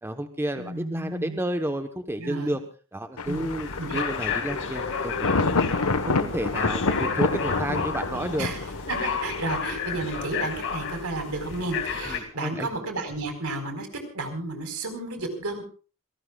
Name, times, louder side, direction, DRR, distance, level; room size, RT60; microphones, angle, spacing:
voice 1, 0.0-2.6 2.9-5.5 5.8-8.5 12.0-12.7, right 1 dB, 10° right, 7 dB, 1.1 m, -31 dB
voice 2, 0.6-1.4 2.2-2.6 3.3-3.4 3.7-4.0 8.4-13.9 14.1-15.6, right 2 dB, 75° right, 6 dB, 4.6 m, -32 dB
Thunder, 3.2-9.6, left 3 dB, 80° left, 1.3 m, -28 dB
sound 1, 3.3-12.2, left 5 dB, 60° left, 2.4 m, -32 dB
27.0 x 18.0 x 2.4 m, 0.37 s
head